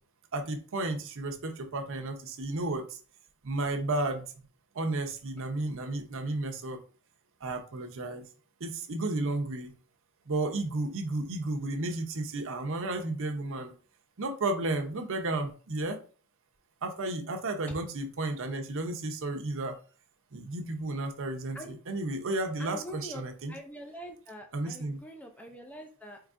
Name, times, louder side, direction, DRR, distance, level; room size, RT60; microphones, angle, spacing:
voice 1, 0.3-3.0 3.4-4.3 4.7-6.8 7.4-8.2 8.6-9.7 10.3-13.7 14.2-16.0 16.8-19.8 20.3-21.6 21.9-23.5 24.5-25.0, right 2 dB, 65° right, 5 dB, 0.7 m, -33 dB
voice 2, 22.6-26.2, equal, 5° left, 3 dB, 0.4 m, -44 dB
4.7 x 3.2 x 2.5 m, 0.39 s
head